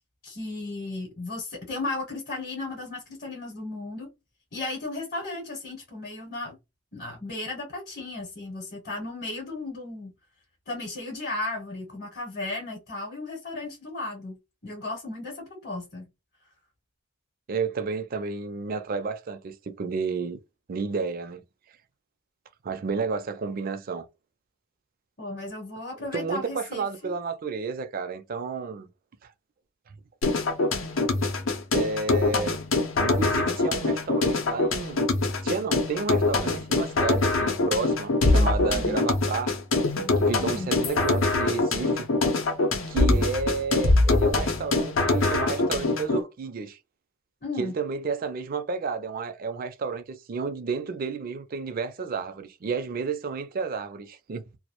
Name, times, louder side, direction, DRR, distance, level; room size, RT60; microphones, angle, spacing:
voice 1, 0.2-4.1 4.5-6.6 6.9-10.1 10.7-14.4 14.6-16.1 25.2-27.1 38.7-39.0 40.4-40.7 47.4-47.7, left 2 dB, 45° left, 0.9 m, -35 dB
voice 2, 17.5-20.4 20.7-21.4 22.6-24.1 26.1-28.9 29.2-29.3 31.7-32.6 33.0-35.0 35.4-39.5 40.2-42.1 42.9-46.8 47.6-54.4, right 4 dB, 45° right, 0.4 m, -31 dB
sound 1, 30.2-46.2, left 2 dB, 75° left, 0.7 m, -24 dB
2.3 x 2.0 x 2.9 m
head